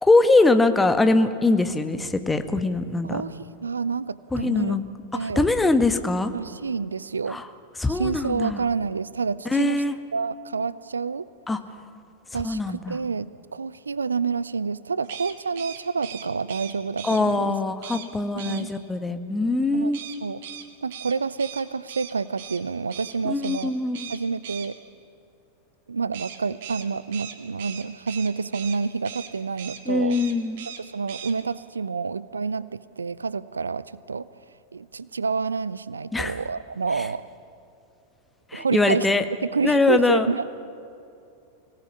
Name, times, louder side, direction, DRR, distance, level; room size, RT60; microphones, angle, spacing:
voice 1, 0.0-3.2 4.3-4.8 5.2-6.3 7.3-7.5 7.8-8.6 9.5-9.9 11.5-11.6 12.4-13.0 17.0-20.0 23.2-24.1 29.9-30.6 36.1-36.4 38.5-39.2 39.6-40.3, left 2 dB, 10° left, 8 dB, 1.3 m, -22 dB
voice 2, 3.0-4.8 5.1-5.5 6.3-7.4 7.9-9.8 10.1-11.3 12.3-17.5 18.5-18.7 19.7-19.9 20.2-20.4 20.8-23.7 24.1-24.8 25.9-30.2 30.7-34.3 34.7-37.2 38.5-39.1 39.5-40.6, right 5 dB, 75° right, 18 dB, 0.5 m, -28 dB
sound 1, 15.0-17.2 17.8-18.1 18.4-18.6 19.9-22.6 22.9-23.2 23.4-23.7 23.9-24.7 26.1-28.8 29.0-29.3 29.6-29.8 30.1-30.8 31.1-31.3, right 9 dB, 55° right, 1.9 m, -39 dB
25.0 x 17.5 x 7.2 m, 2.6 s
figure-of-eight pair, 90°, 0 cm